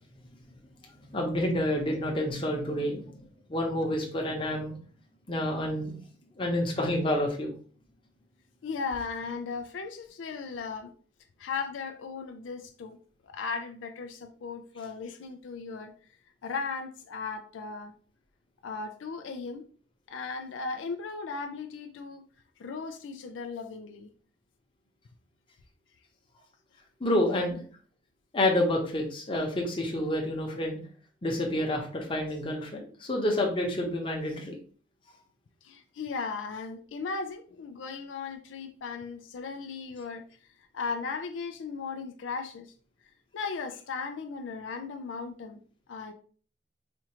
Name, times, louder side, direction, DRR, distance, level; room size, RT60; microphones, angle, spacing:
voice 1, 1.1-3.2 3.5-4.7 5.3-5.9 6.4-7.5 27.0-27.6 28.3-30.8 31.2-34.5, left 1 dB, 25° left, 0.8 m, -28 dB
voice 2, 8.6-10.9 11.4-13.0 13.2-15.9 16.4-17.9 18.6-19.6 20.1-22.2 22.6-24.1 35.6-40.2 40.7-42.7 43.3-45.6 45.9-46.1, left 4 dB, 85° left, 0.4 m, -36 dB
4.3 x 2.4 x 2.9 m
head